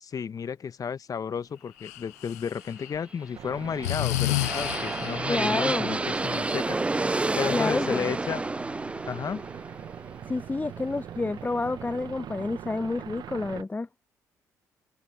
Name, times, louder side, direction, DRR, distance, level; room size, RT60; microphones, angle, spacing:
voice 1, 0.0-6.8 7.3-8.4 9.1-9.4, left 7 dB, 45° left, 1.3 m, -32 dB
Breathing, 1.8-3.0 3.8-5.4, left 20 dB, 85° left, 0.6 m, -30 dB
sound 1, 3.3-13.6, right 10 dB, 55° right, 1.3 m, -42 dB
sound 2, 3.6-11.5, right 2 dB, 15° right, 0.4 m, -30 dB
voice 2, 5.3-5.9 7.5-8.1 10.3-13.9, left 3 dB, 20° left, 0.8 m, -29 dB
open air
hypercardioid pair, 45°, 8 cm